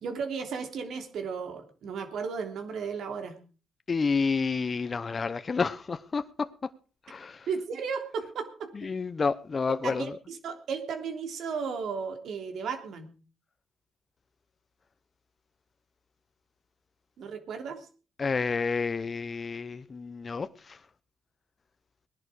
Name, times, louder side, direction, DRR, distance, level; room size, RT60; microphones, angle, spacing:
voice 1, 0.0-3.4 7.5-8.7 9.8-13.1 17.2-17.9, right 5 dB, 70° right, 3.1 m, -34 dB
voice 2, 3.9-6.5 7.1-7.5 8.8-10.1 18.2-20.8, left 4 dB, 35° left, 0.9 m, -30 dB
19.5 x 11.0 x 5.0 m
cardioid pair, 90°, 0 cm